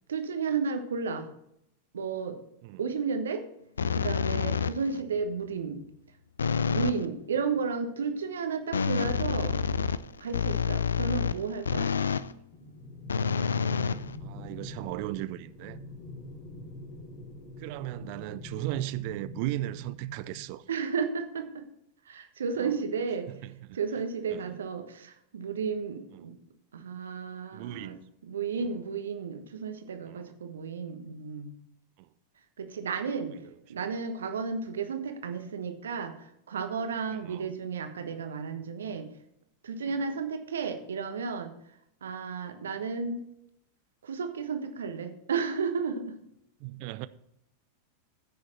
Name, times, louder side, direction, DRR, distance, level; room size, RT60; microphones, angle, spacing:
voice 1, 0.1-1.3 1.9-2.4 2.8-3.4 3.9-5.8 6.7-9.6 10.2-11.9 20.7-21.7 22.0-23.3 23.7-26.4 26.7-28.0 28.2-31.5 32.6-33.4 33.7-39.1 39.6-41.5 42.0-43.2 44.0-46.2, right 5 dB, 65° right, 1.3 m, -33 dB
sound 1, 3.8-5.0 6.4-7.1 8.7-12.3 13.1-14.6, left 6 dB, 70° left, 0.4 m, -28 dB
sound 2, 12.5-20.5, left 1 dB, 25° left, 2.9 m, -44 dB
voice 2, 14.2-15.8 17.6-20.6 22.6-22.7 23.3-23.8 24.3-24.6 26.2-26.3 27.5-28.0 28.6-28.7 30.1-30.4 32.0-32.1 33.3-33.4 37.3-37.6 46.6-47.1, right 17 dB, 45° right, 0.5 m, -37 dB
15.0 x 6.4 x 4.2 m
figure-of-eight pair, 90°, 0 cm